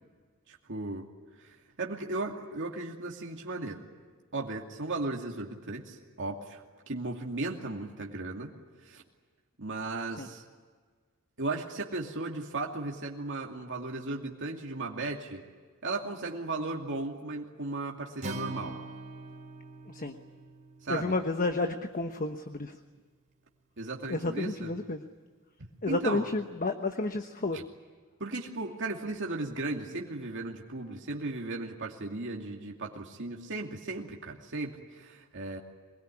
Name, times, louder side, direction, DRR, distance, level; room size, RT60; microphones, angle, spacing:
voice 1, 0.5-1.1 1.4-3.8 4.3-6.6 6.9-8.5 8.8-9.0 9.6-10.4 11.4-15.4 15.8-18.8 20.8-21.1 23.8-24.7 25.9-26.3 27.5-27.6 28.2-35.6, right 2 dB, 60° right, 0 dB, 2.6 m, -36 dB
Acoustic guitar, 18.2-22.4, right 1 dB, 35° right, 3.8 m, -44 dB
voice 2, 19.9-20.2 20.9-22.8 24.1-25.0 25.8-27.6, left 2 dB, 40° left, 7 dB, 1.1 m, -31 dB
24.5 x 21.5 x 10.0 m, 1.5 s
head